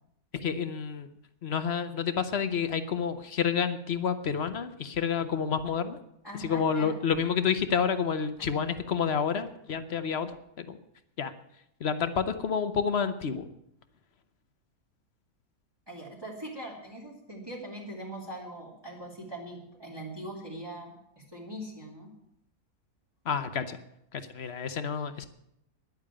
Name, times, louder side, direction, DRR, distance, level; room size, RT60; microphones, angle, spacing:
voice 1, 0.3-1.1 1.4-6.0 6.4-10.8 11.2-11.3 11.8-13.5 23.2-23.8 24.1-25.3, left 6 dB, 50° left, 11 dB, 0.9 m, -29 dB
voice 2, 6.2-7.0 8.4-8.7 15.9-22.1, right 1 dB, 15° right, -4 dB, 2.9 m, -42 dB
10.5 x 8.7 x 8.7 m, 0.78 s
omnidirectional pair, 1.6 m